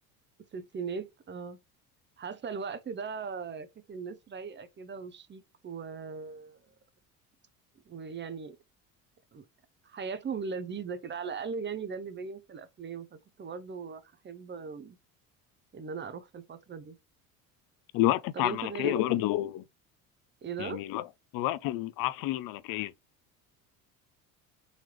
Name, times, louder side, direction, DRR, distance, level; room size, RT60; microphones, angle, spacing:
voice 1, 0.5-1.6 2.2-6.7 7.9-8.6 9.3-9.5 9.8-15.0 15.7-17.0 18.3-19.2 20.4-20.8, right 5 dB, 25° right, 0.6 m, -39 dB
voice 2, 17.9-19.6 20.6-21.0 21.3-22.9, left 15 dB, 55° left, 0.5 m, -29 dB
4.0 x 3.0 x 3.0 m
hypercardioid pair, 70°, 42 cm